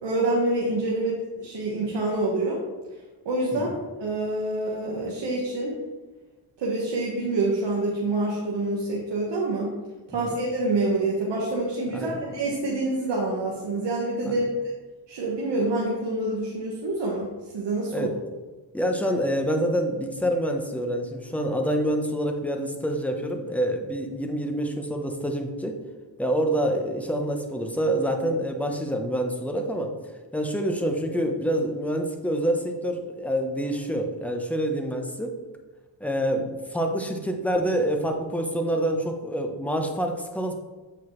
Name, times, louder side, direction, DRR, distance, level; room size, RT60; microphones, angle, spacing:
voice 1, 0.0-2.6 3.2-5.8 6.6-9.7 10.1-14.5 15.1-18.1, right 2 dB, 75° right, -4 dB, 1.3 m, -27 dB
voice 2, 11.9-12.2 14.3-14.4 17.9-18.2 18.7-25.8 26.2-29.9 30.3-35.3 36.0-40.5, equal, 5° left, 4 dB, 0.9 m, -27 dB
7.8 x 4.9 x 3.1 m, 1.3 s
cardioid pair, 75°, 44 cm